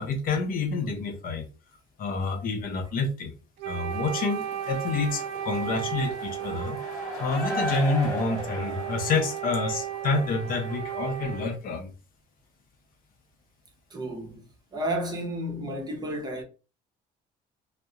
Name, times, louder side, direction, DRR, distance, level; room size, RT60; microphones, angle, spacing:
voice 1, 0.0-1.5 2.0-3.3 3.6-6.8 7.2-11.9, left 3 dB, 55° left, 0.6 m, -28 dB
Wind instrument woodwind instrument, 3.6-11.6, right 10 dB, 85° right, 0.4 m, -35 dB
Mexican Wave, 3.9-11.5, right 1 dB, 20° left, 1.2 m, -38 dB
voice 2, 13.9-14.4 14.7-16.4, right 1 dB, 25° right, 0.7 m, -32 dB
2.3 x 2.1 x 2.7 m
cardioid pair, 110°, 17 cm